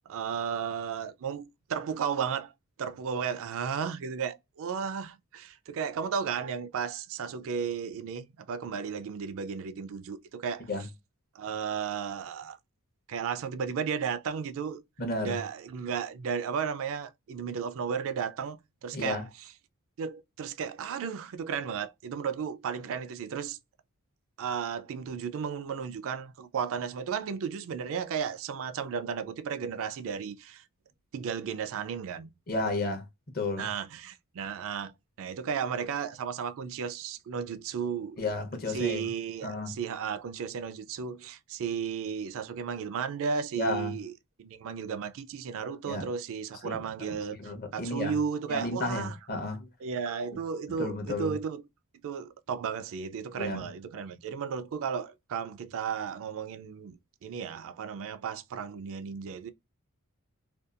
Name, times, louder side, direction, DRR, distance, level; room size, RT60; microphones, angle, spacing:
voice 1, 0.1-2.5 2.8-10.7 11.4-12.6 13.1-14.8 15.2-19.2 20.0-23.6 24.4-30.6 31.1-32.3 33.6-34.9 35.2-38.2 38.7-44.1 44.4-49.2 49.8-51.6 52.0-59.5, right 6 dB, 60° right, 0.3 m, -34 dB
voice 2, 15.0-15.4 18.9-19.2 32.5-33.0 33.3-33.7 38.2-39.0 39.4-39.8 43.6-44.0 45.9-46.0 46.6-48.1 48.5-49.7 50.8-51.3 53.4-53.6, left 2 dB, 45° left, 0.8 m, -32 dB
2.6 x 2.2 x 2.4 m
head